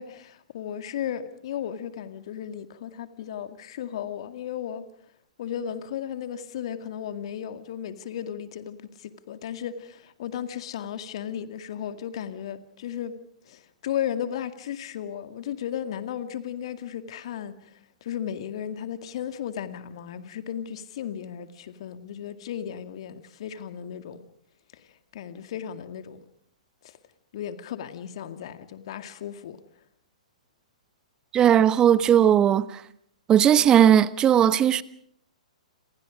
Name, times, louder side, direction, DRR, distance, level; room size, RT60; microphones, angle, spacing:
voice 1, 0.0-4.8 5.4-13.2 13.5-24.3 24.7-24.8 25.1-26.3 26.8-27.0 27.3-29.6, left 9 dB, 50° left, 2.2 m, -35 dB
voice 2, 31.3-32.6 33.3-34.8, right 10 dB, 20° right, 1.1 m, -17 dB
28.0 x 27.5 x 5.1 m
figure-of-eight pair, 115°, 4 cm